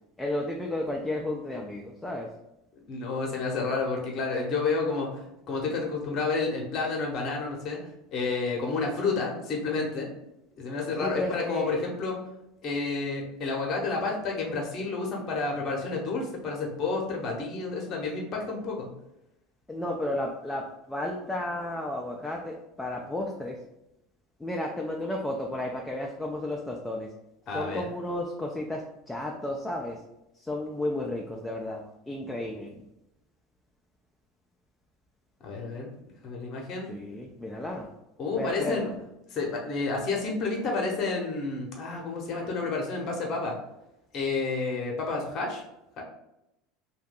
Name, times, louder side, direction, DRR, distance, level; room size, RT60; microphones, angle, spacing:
voice 1, 0.2-2.3 11.0-11.7 19.7-23.6 24.4-27.1 27.5-30.0 30.3-32.8 36.9-37.9 38.4-38.9, left 1 dB, 10° left, 0 dB, 0.4 m, -33 dB
voice 2, 2.9-7.8 8.1-10.1 10.6-12.1 12.6-18.9 27.5-27.8 35.4-35.9 36.2-36.9 38.2-38.9 39.3-43.5 44.1-45.6 46.0-46.1, left 3 dB, 45° left, 0 dB, 0.9 m, -30 dB
2.6 x 2.3 x 3.7 m, 0.87 s
hypercardioid pair, 80°, 0 cm